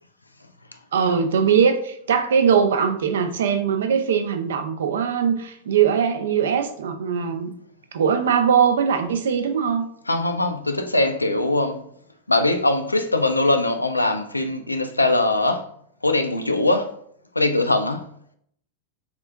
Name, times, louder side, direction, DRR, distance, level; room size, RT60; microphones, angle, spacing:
voice 1, 0.9-7.5 7.9-9.9, right 7 dB, 65° right, 0.4 m, -21 dB
voice 2, 10.1-11.8 12.3-15.7 16.0-16.9 17.4-18.0, left 2 dB, 85° left, 0.3 m, -21 dB
3.5 x 2.5 x 2.3 m
figure-of-eight pair, 90°, 0 cm